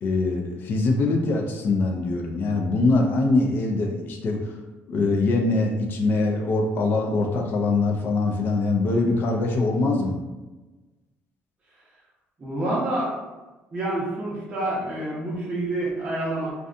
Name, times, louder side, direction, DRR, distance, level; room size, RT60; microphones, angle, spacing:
voice 1, 0.0-4.5 4.9-10.2, left 3 dB, 45° left, 2 dB, 0.4 m, -23 dB
voice 2, 12.4-13.2 13.7-16.5, right 1 dB, 20° right, -8 dB, 0.6 m, -27 dB
2.7 x 2.2 x 2.4 m, 1.1 s
cardioid pair, 170°, 5 cm